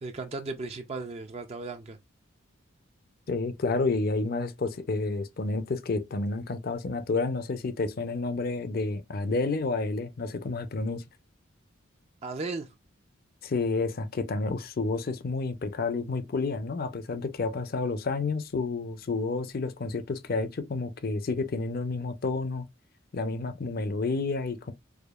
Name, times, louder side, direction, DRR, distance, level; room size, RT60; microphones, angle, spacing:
voice 1, 0.0-2.0 12.2-12.7, right 3 dB, 30° right, 0.4 m, -36 dB
voice 2, 3.3-11.0 13.4-22.7 23.1-24.7, left 3 dB, 50° left, 0.5 m, -30 dB
4.9 x 2.3 x 2.3 m
head